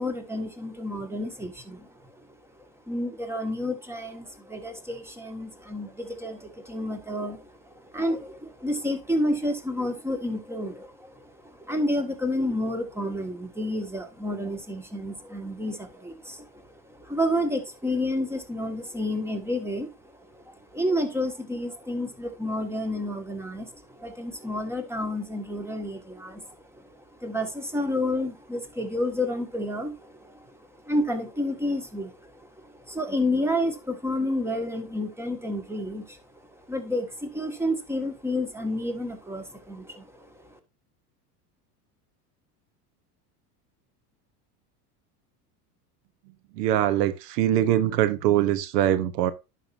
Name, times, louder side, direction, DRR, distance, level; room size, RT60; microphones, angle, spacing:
voice 1, 0.0-2.3 2.9-36.2 36.6-40.6, left 1 dB, 5° right, 1.6 m, -30 dB
voice 2, 46.6-49.3, right 12 dB, 80° right, 0.9 m, -23 dB
11.0 x 5.8 x 2.6 m
supercardioid pair, 100°, 47 cm